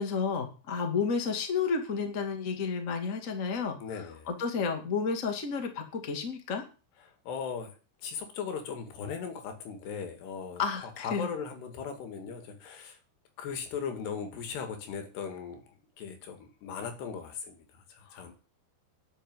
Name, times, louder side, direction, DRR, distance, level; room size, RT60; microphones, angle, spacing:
voice 1, 0.0-3.8 4.3-6.6 10.6-11.3 18.1-18.2, left 5 dB, 25° left, 5 dB, 2.0 m, -31 dB
voice 2, 3.8-4.3 7.0-7.7 8.0-13.0 13.4-15.6 16.0-18.3, left 6 dB, 80° left, 6 dB, 4.3 m, -38 dB
12.0 x 6.4 x 9.5 m, 0.35 s
omnidirectional pair, 4.7 m